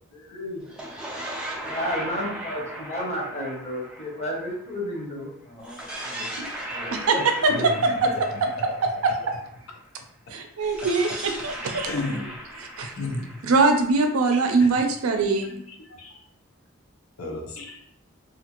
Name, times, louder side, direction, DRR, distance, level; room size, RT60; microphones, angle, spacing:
voice 1, 0.1-0.7 1.7-6.4 6.7-8.2, equal, 30° left, -3 dB, 0.7 m, -32 dB
sound 1, 0.6-5.0 5.6-9.6 10.6-14.4, right 1 dB, 5° right, 0.4 m, -37 dB
voice 2, 10.3-11.9 12.6-12.9 13.4-15.5, right 3 dB, 85° right, 5 dB, 0.4 m, -22 dB
voice 3, 11.8-12.3 13.0-13.5 14.6-14.7 15.7-16.1 17.2-17.8, left 2 dB, 80° left, 1 dB, 0.6 m, -32 dB
2.6 x 2.4 x 2.9 m, 0.68 s
head